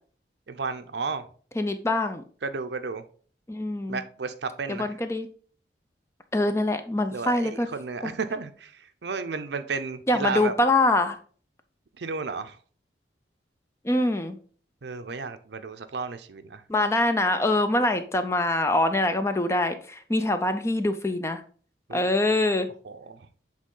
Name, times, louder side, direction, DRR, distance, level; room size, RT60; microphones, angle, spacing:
voice 1, 0.5-1.2 2.4-3.0 3.9-4.9 7.1-10.5 12.0-12.6 14.8-16.6 21.9-22.0 22.8-23.3, right 4 dB, 65° right, 0.6 m, -33 dB
voice 2, 1.6-2.2 3.5-4.0 4.7-5.3 6.3-7.7 8.0-8.1 10.1-11.2 13.8-14.4 16.7-21.4 21.9-22.7, left 2 dB, 15° left, 0.5 m, -24 dB
7.5 x 3.6 x 3.8 m
head